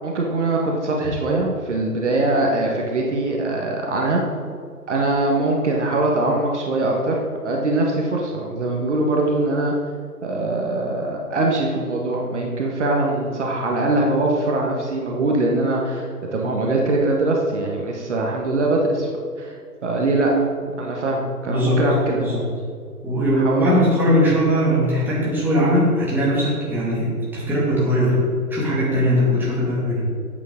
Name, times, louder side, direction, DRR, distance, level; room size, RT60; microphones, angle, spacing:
voice 1, 0.0-4.2 4.9-9.7 10.2-19.1 19.4-22.4 23.3-23.8, right 2 dB, 45° right, -1 dB, 1.5 m, -22 dB
voice 2, 21.4-22.4 23.0-28.2 28.5-30.1, equal, 5° right, -8 dB, 2.1 m, -20 dB
11.0 x 8.6 x 3.8 m, 2.3 s
figure-of-eight pair, 135°, 47 cm